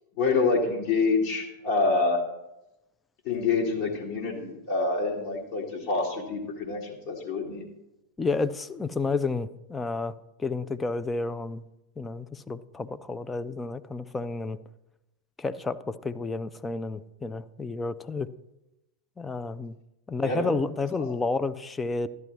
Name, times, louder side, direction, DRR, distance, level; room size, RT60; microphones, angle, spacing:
voice 1, 0.2-2.2 3.3-7.6 20.2-20.5 21.0-21.1, left 4 dB, 45° left, -2 dB, 1.7 m, -27 dB
voice 2, 8.2-10.1 10.4-11.6 12.0-14.6 15.4-18.3 19.2-19.8 20.1-22.1, left 3 dB, 15° left, 13 dB, 0.5 m, -30 dB
13.5 x 10.5 x 3.1 m, 0.92 s
figure-of-eight pair, 90°, 0 cm